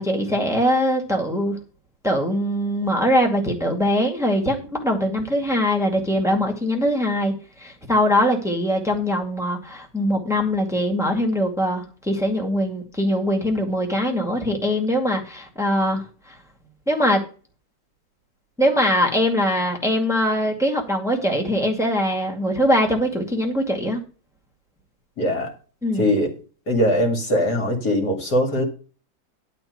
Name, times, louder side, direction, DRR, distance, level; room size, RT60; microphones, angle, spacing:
voice 1, 0.0-1.6 2.0-16.4 16.9-17.2 18.6-24.0 25.8-26.1, equal, ahead, 1 dB, 2.1 m, -22 dB
voice 2, 25.2-25.5 26.0-26.3 26.7-28.6, equal, 65° left, 2 dB, 3.1 m, -21 dB
11.5 x 4.4 x 8.0 m, 0.37 s
omnidirectional pair, 1.9 m